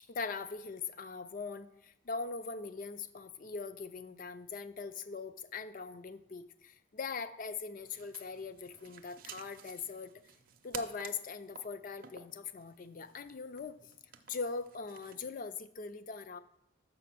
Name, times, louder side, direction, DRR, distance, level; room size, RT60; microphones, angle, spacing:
voice 1, 0.1-10.1 10.6-13.9 14.3-16.4, left 4 dB, 45° left, 12 dB, 0.4 m, -41 dB
sound 1, 7.8-15.3, right 8 dB, 45° right, 0.5 m, -52 dB
6.8 x 5.1 x 5.9 m, 0.77 s
head